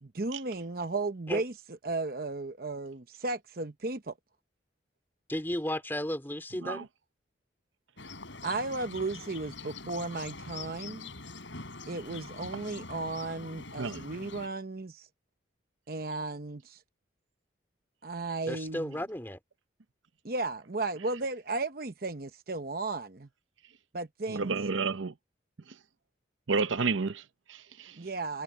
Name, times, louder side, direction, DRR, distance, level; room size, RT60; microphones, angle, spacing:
voice 1, 0.0-4.1 8.4-11.1 11.9-15.1 15.9-16.8 18.0-19.0 20.2-23.3 23.9-24.6 28.0-28.4, right 3 dB, 50° right, 0.9 m, -35 dB
voice 2, 5.3-6.9 18.5-19.4, left 1 dB, 10° left, 3.0 m, -34 dB
sound 1, 8.0-14.5, left 3 dB, 75° left, 6.9 m, -44 dB
voice 3, 24.3-25.1 26.5-28.0, right 4 dB, 85° right, 0.8 m, -31 dB
head